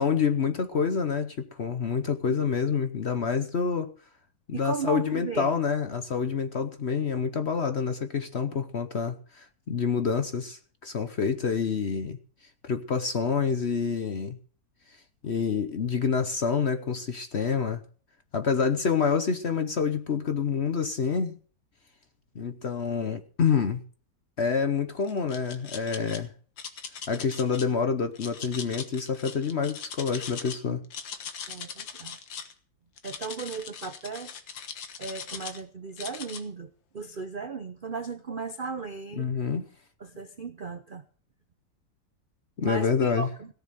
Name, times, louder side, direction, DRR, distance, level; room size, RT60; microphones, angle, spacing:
voice 1, 0.0-3.9 4.5-12.2 12.6-14.4 15.2-17.8 18.3-21.4 22.3-23.8 24.4-26.3 27.1-30.8 39.2-39.7 42.6-43.3, left 6 dB, 45° left, 9 dB, 0.9 m, -27 dB
voice 2, 4.5-5.5 31.5-32.2 33.0-34.3 35.0-39.3 40.0-41.0 42.6-43.5, right 5 dB, 50° right, 10 dB, 0.6 m, -36 dB
sound 1, 25.0-26.2 26.6-27.7 28.2-30.6 30.8-32.5 33.0-35.6 36.0-36.4, left 7 dB, 90° left, 2.1 m, -40 dB
17.5 x 7.1 x 7.6 m, 0.43 s
omnidirectional pair, 2.0 m